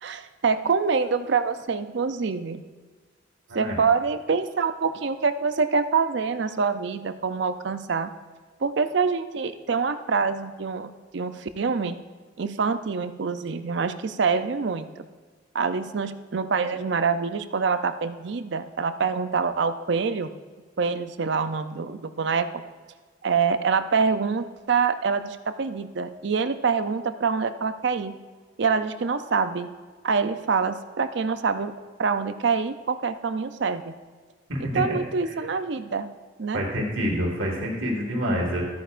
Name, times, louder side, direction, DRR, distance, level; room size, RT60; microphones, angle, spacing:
voice 1, 0.0-2.6 3.5-8.1 8.6-12.0 12.4-15.1 15.5-20.3 20.8-22.6 23.2-28.1 28.6-29.7 30.0-31.7 32.0-33.9 34.7-36.1 36.4-36.6, right 5 dB, 60° right, 11 dB, 0.5 m, -25 dB
voice 2, 34.5-35.0 36.5-38.6, equal, 85° right, -1 dB, 1.9 m, -27 dB
13.5 x 9.4 x 2.5 m, 1.4 s
head